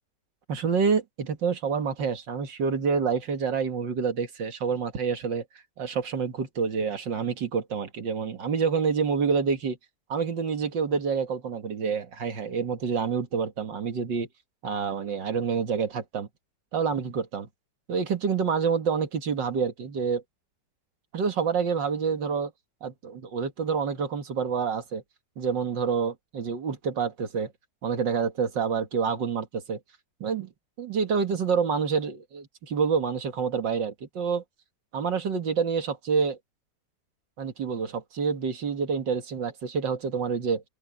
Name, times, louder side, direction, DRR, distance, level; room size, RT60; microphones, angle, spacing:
voice 1, 0.5-5.5 5.8-9.8 10.1-14.3 14.6-16.3 16.7-17.5 17.9-20.2 21.1-22.5 22.8-25.0 25.4-27.5 27.8-29.8 30.2-30.5 30.8-34.4 34.9-36.4 37.4-40.6, right 6 dB, 80° right, 2.4 m, -27 dB
open air
omnidirectional pair, 1.9 m